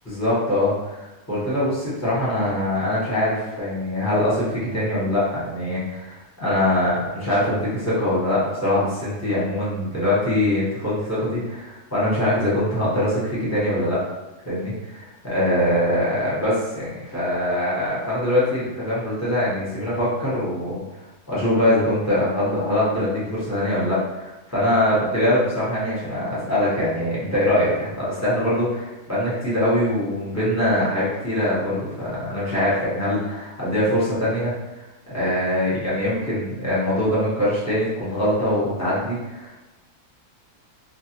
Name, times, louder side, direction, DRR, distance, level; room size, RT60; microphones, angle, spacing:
voice 1, 0.1-14.0 14.4-20.8 21.3-39.7, left 1 dB, 15° left, -9 dB, 0.7 m, -23 dB
2.4 x 2.3 x 2.8 m, 1.0 s
omnidirectional pair, 1.6 m